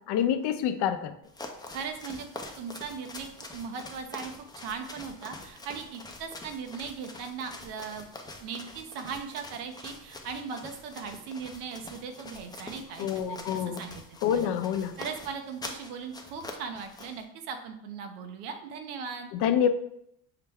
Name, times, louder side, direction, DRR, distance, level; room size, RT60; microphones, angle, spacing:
voice 1, 0.1-1.1 13.0-13.8 14.2-14.9 19.3-19.7, left 9 dB, 60° left, 9 dB, 0.5 m, -27 dB
sound 1, 1.2-17.2, left 2 dB, 10° left, 0.4 m, -45 dB
voice 2, 1.7-2.3 2.6-8.1 8.4-14.5 15.0-19.3, right 6 dB, 85° right, 6 dB, 0.8 m, -39 dB
5.7 x 2.2 x 3.4 m, 0.76 s
supercardioid pair, 90°, 47 cm